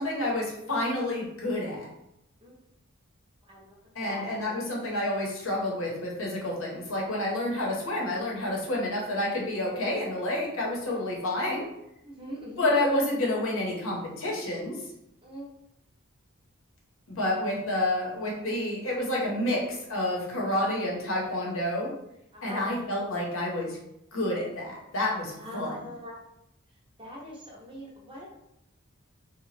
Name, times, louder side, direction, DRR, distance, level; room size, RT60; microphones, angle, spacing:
voice 1, 0.0-1.9 3.9-11.7 12.6-14.8 17.2-21.9 22.4-23.8 24.1-25.9, left 1 dB, 65° left, -2 dB, 0.8 m, -29 dB
voice 2, 4.0-4.4 12.0-12.7 15.2-15.5 20.5-20.7 22.3-22.7 25.4-26.2 27.0-28.3, equal, 25° right, -3 dB, 0.6 m, -42 dB
2.8 x 2.2 x 3.1 m, 0.83 s
head